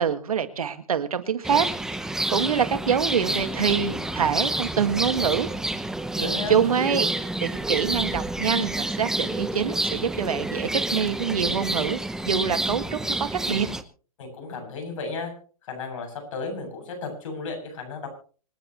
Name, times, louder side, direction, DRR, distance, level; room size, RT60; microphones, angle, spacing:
voice 1, 0.0-5.5 6.2-12.0 12.3-13.7, right 7 dB, 90° right, 10 dB, 1.9 m, -25 dB
sound 1, 1.4-13.8, right 2 dB, 5° right, 0.9 m, -29 dB
voice 2, 6.1-6.6 14.2-15.3 15.6-18.1, left 3 dB, 65° left, 4 dB, 7.8 m, -34 dB
26.0 x 10.5 x 3.1 m, 0.40 s
hypercardioid pair, 135°, 18 cm